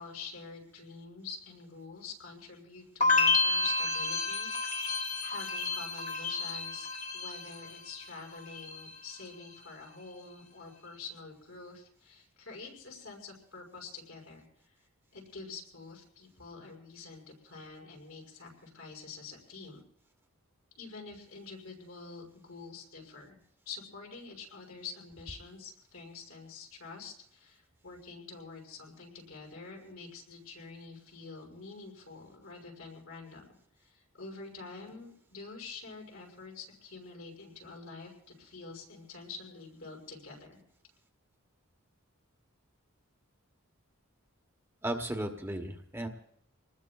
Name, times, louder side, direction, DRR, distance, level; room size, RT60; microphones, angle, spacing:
voice 1, 0.0-4.5 5.2-6.9 7.1-14.8 15.1-19.8 20.8-23.4 23.7-33.5 33.8-40.6, left 4 dB, 75° left, -1 dB, 5.6 m, -47 dB
sound 1, 3.0-8.0 8.3-9.0, left 3 dB, 35° left, 1.5 m, -30 dB
voice 2, 44.8-46.1, right 1 dB, 10° right, 3 dB, 1.1 m, -35 dB
27.5 x 20.0 x 2.4 m, 0.67 s
head